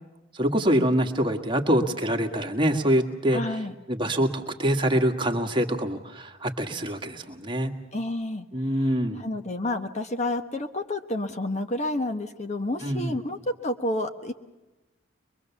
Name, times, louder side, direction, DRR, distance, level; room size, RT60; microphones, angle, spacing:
voice 1, 0.3-3.4 3.9-7.7 8.5-9.3 12.8-13.1, equal, 25° right, 4 dB, 1.7 m, -25 dB
voice 2, 3.3-3.7 7.9-8.5 9.2-14.3, left 1 dB, 35° left, 7 dB, 1.2 m, -29 dB
23.5 x 23.0 x 7.1 m, 1.1 s
head